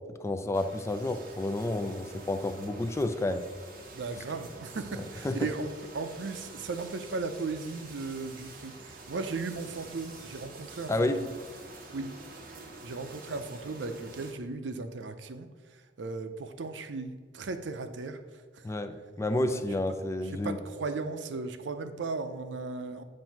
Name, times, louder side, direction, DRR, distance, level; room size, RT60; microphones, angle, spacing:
voice 1, 0.2-3.5 5.2-5.4 10.9-11.2 18.6-20.6, left 2 dB, 15° left, 8 dB, 0.3 m, -30 dB
sound 1, 0.5-14.3, right 2 dB, 50° right, 1.0 m, -47 dB
voice 2, 3.9-11.4 11.9-12.1 12.4-18.2 18.5-18.6 19.4-19.8 20.2-23.0, right 3 dB, 80° right, 9 dB, 0.5 m, -37 dB
7.6 x 2.6 x 5.7 m, 1.4 s
head